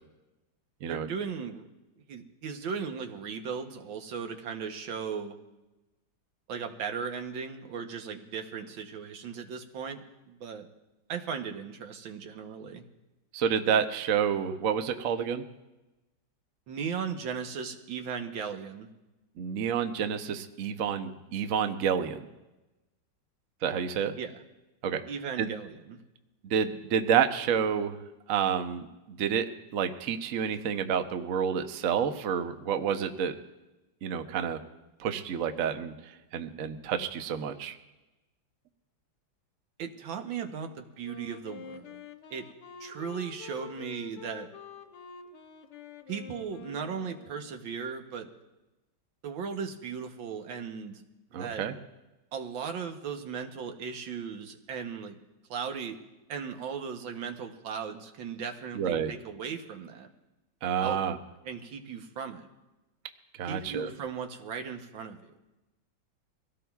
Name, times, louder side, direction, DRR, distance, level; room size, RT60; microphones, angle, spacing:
voice 1, 0.9-1.7 2.1-5.4 6.5-10.0 10.3-10.7 11.1-12.9 16.7-18.9 24.2-24.4 25.1-26.0 39.8-42.0 42.3-42.5 42.8-44.5 46.1-48.3 49.2-51.0 51.3-51.6 52.3-55.2 55.5-56.0 56.3-60.1 60.8-61.0 61.5-62.5 63.4-65.2, right 6 dB, 85° right, 4 dB, 1.8 m, -37 dB
voice 2, 13.3-15.4 19.4-22.2 23.6-24.1 24.8-25.0 25.4-25.5 26.4-28.0 28.3-29.5 29.7-33.3 34.0-34.6 35.0-37.8 51.3-51.7 58.7-59.1 60.6-61.2 63.4-63.9, right 8 dB, 55° right, 8 dB, 1.0 m, -29 dB
Wind instrument woodwind instrument, 41.0-47.7, left 7 dB, 70° left, 1.6 m, -47 dB
23.5 x 17.0 x 2.4 m, 1.0 s
omnidirectional pair, 2.1 m